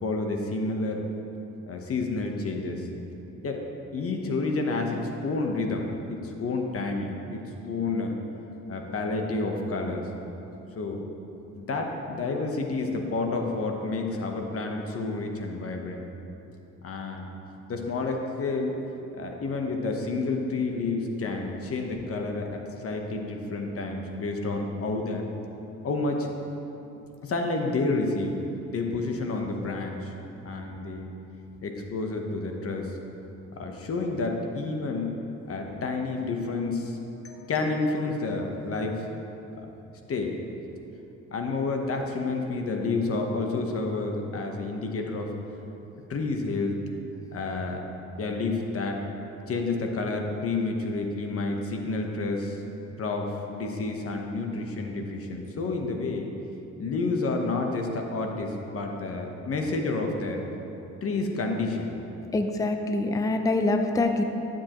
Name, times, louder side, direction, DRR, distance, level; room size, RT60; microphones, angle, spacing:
voice 1, 0.0-1.1 1.7-2.9 3.4-3.6 3.9-8.1 8.7-10.1 10.8-11.0 11.5-16.1 16.8-17.3 17.7-18.8 19.1-25.2 25.8-26.3 27.2-28.4 28.7-30.1 30.4-31.1 31.6-33.0 33.6-35.2 35.5-37.0 37.2-39.1 40.1-40.4 41.3-45.3 46.1-46.7 47.3-47.8 48.2-49.0 49.5-52.6 53.0-56.3 56.8-60.4 61.0-62.0, left 3 dB, 50° left, 2 dB, 1.1 m, -29 dB
voice 2, 62.3-64.2, left 2 dB, 10° left, 5 dB, 0.5 m, -25 dB
11.0 x 7.4 x 3.0 m, 3.0 s
cardioid pair, 90°, 30 cm